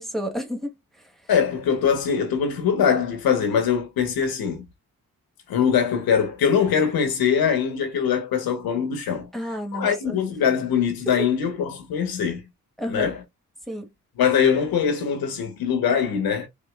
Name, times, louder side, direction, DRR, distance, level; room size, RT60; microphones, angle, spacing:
voice 1, 0.0-1.1 9.3-10.2 11.1-11.2 12.8-13.1 13.7-13.9, equal, ahead, 1.6 m, -31 dB
voice 2, 1.3-4.7 5.5-9.3 9.7-12.4 12.9-13.2 14.2-16.5, left 7 dB, 90° left, 1.5 m, -22 dB
5.1 x 2.9 x 2.5 m
cardioid pair, 55°, 35 cm